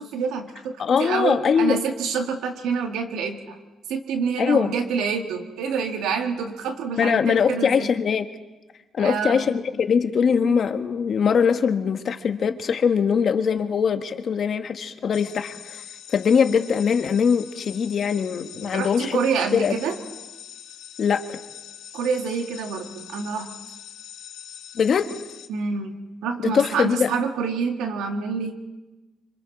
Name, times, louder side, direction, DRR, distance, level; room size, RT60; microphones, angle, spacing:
voice 1, 0.0-3.6 3.9-7.9 9.0-9.5 18.6-20.0 21.9-23.5 25.5-28.5, right 5 dB, 90° right, 4 dB, 2.0 m, -27 dB
voice 2, 0.8-1.8 4.4-4.7 7.0-8.3 9.0-19.2 19.5-19.8 21.0-21.4 24.7-25.2 26.4-27.1, left 6 dB, 55° left, 8 dB, 1.4 m, -22 dB
sound 1, 15.1-25.5, left 10 dB, 85° left, 1.6 m, -43 dB
26.5 x 25.5 x 4.1 m, 1.1 s
cardioid pair, 90°, 0 cm